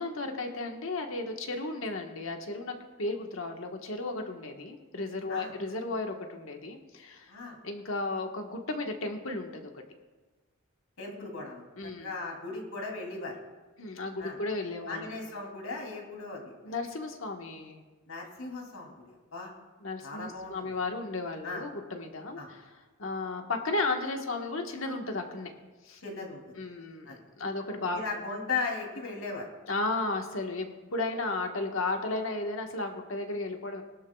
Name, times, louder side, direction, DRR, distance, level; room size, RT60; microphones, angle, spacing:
voice 1, 0.0-7.3 7.6-9.7 11.8-12.2 13.8-15.2 16.6-17.8 19.8-22.6 23.0-25.5 25.8-26.0 26.6-28.0 29.7-30.7 30.9-33.8, left 2 dB, 70° left, 3 dB, 1.4 m, -34 dB
voice 2, 7.3-7.6 11.0-11.6 12.0-13.3 14.2-14.4 14.9-16.5 18.1-18.9 19.3-19.5 20.0-20.5 21.4-21.6 22.4-22.5 26.0-26.4 27.0-27.2 27.9-29.4, left 4 dB, 85° left, 0 dB, 3.1 m, -37 dB
21.5 x 12.0 x 2.4 m, 1.2 s
head